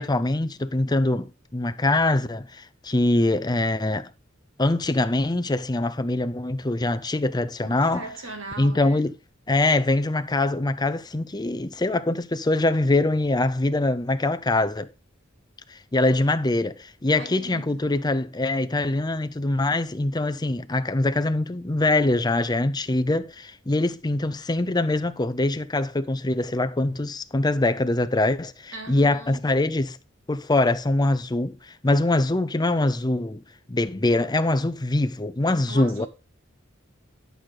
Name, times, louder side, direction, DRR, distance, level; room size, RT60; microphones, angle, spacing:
voice 1, 0.0-4.1 4.6-8.0 8.6-9.1 9.5-14.9 15.7-30.0 30.3-33.4 33.7-36.1, left 2 dB, 20° left, 0.7 m, -23 dB
voice 2, 7.6-9.1 17.2-17.8 28.7-29.4 35.7-36.1, right 2 dB, 75° right, 2.6 m, -39 dB
11.5 x 6.6 x 3.9 m
head